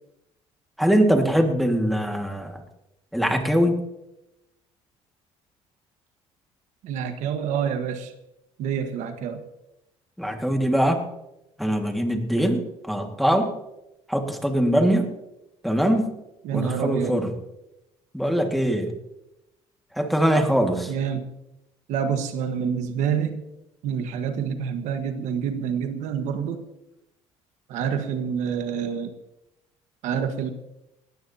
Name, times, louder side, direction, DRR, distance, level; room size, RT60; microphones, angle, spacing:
voice 1, 0.8-2.6 3.1-3.8 10.2-11.0 11.6-13.5 14.1-15.1 15.6-16.1 16.5-17.3 18.1-18.9 20.0-20.9, equal, ahead, 3 dB, 1.8 m, -22 dB
voice 2, 6.8-8.1 8.6-9.4 16.4-17.2 20.9-21.2 21.9-23.4 23.8-26.6 27.7-29.1 30.0-30.5, right 7 dB, 75° right, 7 dB, 1.4 m, -27 dB
19.0 x 14.0 x 2.8 m, 0.89 s
cardioid pair, 115°, 12 cm